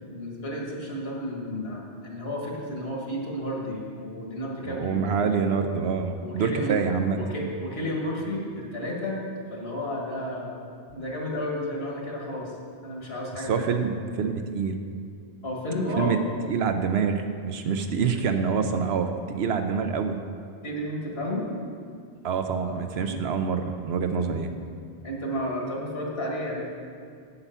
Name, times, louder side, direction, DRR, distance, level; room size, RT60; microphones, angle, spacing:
voice 1, 0.1-5.4 6.2-6.8 7.1-9.2 9.5-10.6 10.9-12.6 12.8-13.7 15.4-16.2 20.6-21.5 22.6-22.8 23.1-23.2 24.2-24.4 25.0-26.7, left 1 dB, 60° left, -2 dB, 1.9 m, -32 dB
voice 2, 4.6-7.2 13.5-14.8 16.0-16.2 16.5-20.2 22.2-24.5, right 6 dB, 70° right, 6 dB, 0.9 m, -26 dB
8.2 x 8.0 x 5.6 m, 2.3 s
omnidirectional pair, 1.1 m